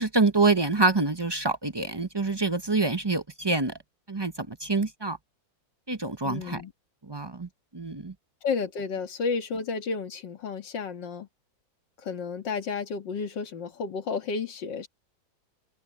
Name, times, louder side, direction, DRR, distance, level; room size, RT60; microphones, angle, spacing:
voice 1, 0.0-3.7 4.1-5.2 5.9-6.6 7.1-8.1, right 3 dB, 35° right, 0.4 m, -26 dB
voice 2, 6.2-6.7 8.4-11.3 12.0-14.9, left 5 dB, 70° left, 2.4 m, -32 dB
open air
omnidirectional pair, 2.1 m